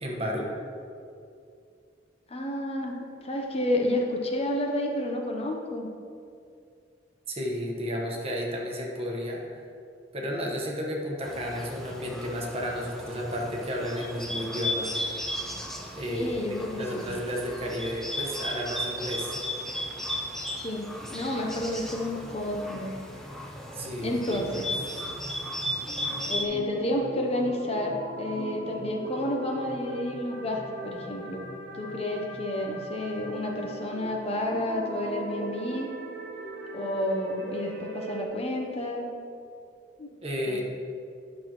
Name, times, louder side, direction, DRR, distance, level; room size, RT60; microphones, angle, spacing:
voice 1, 0.0-0.5 7.3-9.4 10.1-14.9 15.9-16.4 16.8-19.4 23.7-25.0 40.2-40.6, equal, 35° right, -1 dB, 1.2 m, -32 dB
voice 2, 2.3-5.9 16.1-17.0 20.6-22.9 24.0-24.8 26.3-31.4 31.7-35.9 36.7-39.1 40.0-40.1 40.5-40.6, left 1 dB, 35° left, 1 dB, 0.8 m, -30 dB
Bird, 11.2-26.4, left 1 dB, 5° left, 0.7 m, -35 dB
sound 1, 23.8-38.2, right 2 dB, 65° right, 1.1 m, -41 dB
10.5 x 6.2 x 3.0 m, 2.4 s
head